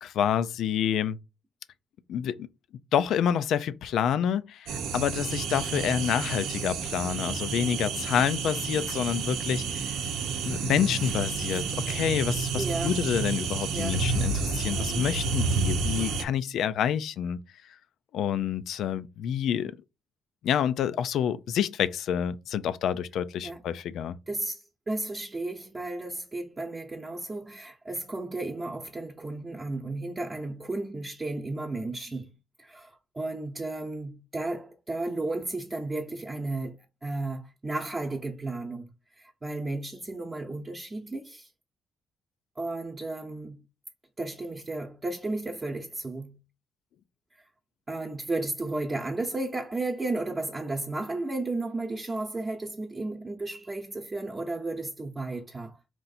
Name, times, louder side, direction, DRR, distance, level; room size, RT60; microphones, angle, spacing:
voice 1, 0.0-1.2 2.1-2.5 2.9-10.0 10.4-17.4 18.1-19.7 20.4-24.2, left 9 dB, 75° left, 0.4 m, -28 dB
sound 1, 4.7-16.2, right 4 dB, 90° right, 0.7 m, -30 dB
voice 2, 12.5-13.0 13.7-14.0 23.4-23.7 24.3-32.3 32.6-41.5 42.6-43.6 44.2-46.4 47.4-47.5 47.9-55.8, right 2 dB, 25° right, 0.8 m, -34 dB
4.3 x 2.6 x 4.1 m
cardioid pair, 95°, 0 cm